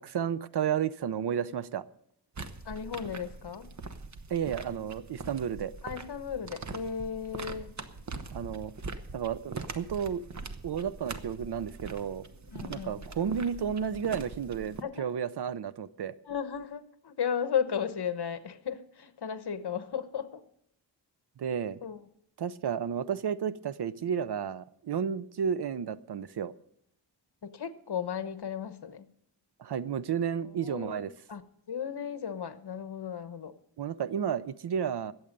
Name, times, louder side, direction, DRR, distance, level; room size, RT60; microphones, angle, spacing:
voice 1, 0.0-1.8 4.3-5.7 8.3-8.7 9.1-10.2 10.6-12.3 12.7-16.1 21.4-21.8 22.4-26.5 29.6-31.1 33.8-35.1, right 8 dB, 65° right, 17 dB, 0.6 m, -32 dB
sound 1, 2.3-14.8, right 3 dB, 40° right, 0.9 m, -43 dB
voice 2, 2.6-3.7 5.8-7.8 12.5-13.0 14.8-15.0 16.3-20.4 21.8-22.0 27.4-29.1 30.6-31.4 31.7-33.5, left 7 dB, 60° left, 11 dB, 1.1 m, -35 dB
21.0 x 8.0 x 5.3 m, 0.71 s
wide cardioid pair, 130°, 44 cm